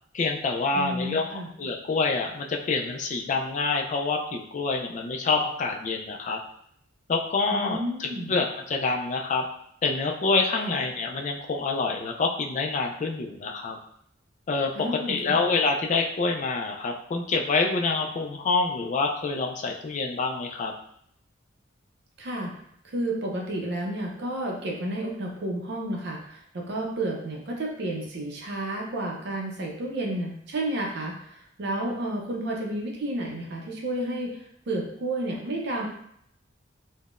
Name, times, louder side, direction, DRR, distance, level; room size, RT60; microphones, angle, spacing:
voice 1, 0.1-6.4 7.1-9.5 9.8-13.8 14.5-20.7, left 3 dB, 40° left, 2 dB, 0.3 m, -27 dB
voice 2, 0.7-1.5 7.5-8.3 10.6-10.8 14.7-15.4 22.2-22.5 22.8-34.3 34.7-35.9, right 1 dB, 55° right, -1 dB, 0.5 m, -31 dB
3.6 x 2.1 x 2.4 m, 0.70 s
head